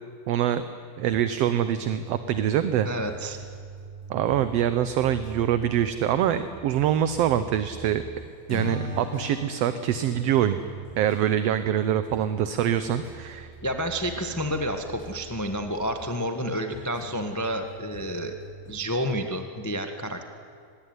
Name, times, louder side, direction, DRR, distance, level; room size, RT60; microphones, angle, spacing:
voice 1, 0.3-0.7 1.0-2.9 4.1-8.0 8.5-10.6 11.0-13.5, right 10 dB, 65° right, 11 dB, 1.8 m, -24 dB
sound 1, 1.0-18.7, right 4 dB, 5° right, 7.5 m, -45 dB
voice 2, 2.8-3.4 13.6-18.3 18.7-20.3, equal, 15° left, 6 dB, 0.7 m, -30 dB
Acoustic guitar / Strum, 8.5-11.8, left 1 dB, 60° left, 5.9 m, -37 dB
25.0 x 20.5 x 9.7 m, 2.4 s
omnidirectional pair, 3.4 m